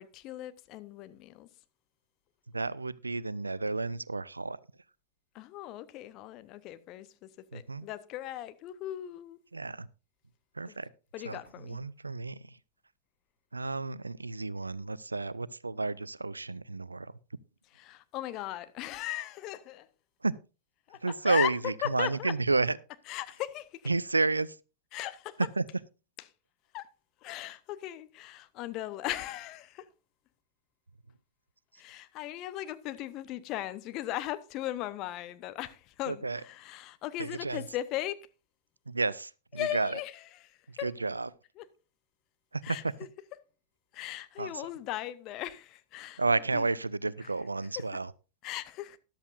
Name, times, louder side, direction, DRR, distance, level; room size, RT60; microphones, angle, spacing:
voice 1, 0.0-1.5 5.3-9.4 10.7-10.8 11.1-11.8 17.7-19.9 20.9-21.5 21.8-22.3 23.1-23.9 24.9-25.4 26.7-26.9 27.2-29.9 31.8-38.3 39.5-40.9 41.6-41.7 42.6-42.8 43.9-46.2 46.5-46.7 47.2-47.3 47.8-47.9 48.4-49.0, left 14 dB, 40° left, 0.8 m, -38 dB
voice 2, 2.5-4.6 7.5-7.9 9.5-9.9 10.6-10.9 11.3-12.6 13.5-17.1 20.2-20.3 21.0-22.8 23.9-24.6 25.6-25.7 36.1-36.4 37.2-37.6 38.9-40.0 40.7-41.3 42.5-42.9 44.4-44.5 46.2-48.1, right 3 dB, 80° right, 0.4 m, -31 dB
13.5 x 11.5 x 2.5 m
figure-of-eight pair, 90°, 0 cm